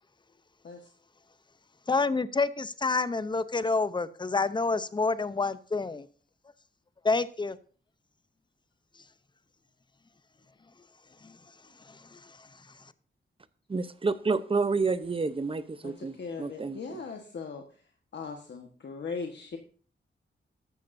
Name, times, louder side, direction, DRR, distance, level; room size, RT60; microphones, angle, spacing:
voice 1, 1.9-6.1 7.0-7.6 11.2-12.9, left 3 dB, 25° left, 0.7 m, -29 dB
voice 2, 13.7-17.0, right 4 dB, 25° right, 0.8 m, -29 dB
voice 3, 15.8-17.6 18.1-19.6, left 5 dB, 65° left, 1.4 m, -39 dB
14.5 x 12.0 x 2.7 m
wide cardioid pair, 130°, 20 cm